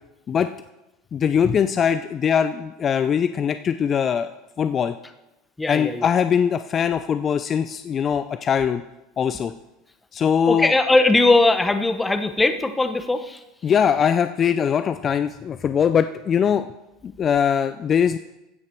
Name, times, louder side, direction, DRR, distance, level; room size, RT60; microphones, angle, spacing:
voice 1, 1.1-4.3 4.6-4.9 5.7-8.8 9.2-9.5 10.1-10.7 13.6-16.7 17.0-18.2, left 7 dB, 35° left, 10 dB, 0.4 m, -21 dB
voice 2, 5.6-6.1 10.5-13.4, left 2 dB, 10° left, 9 dB, 1.0 m, -19 dB
15.5 x 5.8 x 4.6 m, 0.96 s
hypercardioid pair, 85°, 0 cm